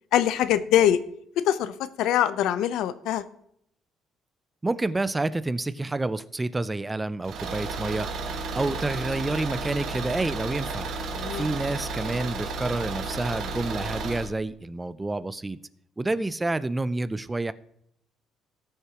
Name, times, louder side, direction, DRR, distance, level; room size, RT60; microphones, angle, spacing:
voice 1, 0.1-1.0 1.4-3.2 11.2-11.5, left 11 dB, 80° left, 14 dB, 0.6 m, -23 dB
voice 2, 4.6-8.1 8.5-10.9 11.3-15.6 16.0-17.5, right 2 dB, 10° right, 15 dB, 0.4 m, -28 dB
Car / Engine, 7.2-14.3, right 3 dB, 60° right, 1.5 m, -33 dB
18.5 x 6.7 x 2.9 m, 0.72 s
cardioid pair, 145°, 0 cm